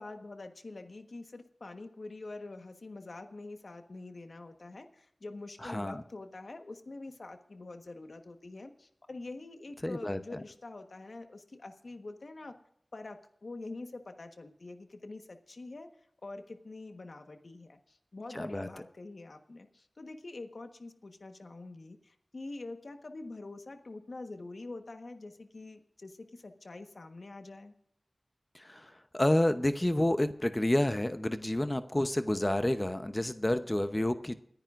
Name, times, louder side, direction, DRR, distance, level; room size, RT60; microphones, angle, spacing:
voice 1, 0.0-12.6 12.9-15.9 16.2-27.7, left 2 dB, 75° left, 6 dB, 1.3 m, -45 dB
voice 2, 5.6-6.0 9.8-10.4 18.3-18.7 28.5-34.4, left 1 dB, 25° left, 10 dB, 0.8 m, -29 dB
29.0 x 10.5 x 2.5 m, 0.70 s
wide cardioid pair, 50°, 0 cm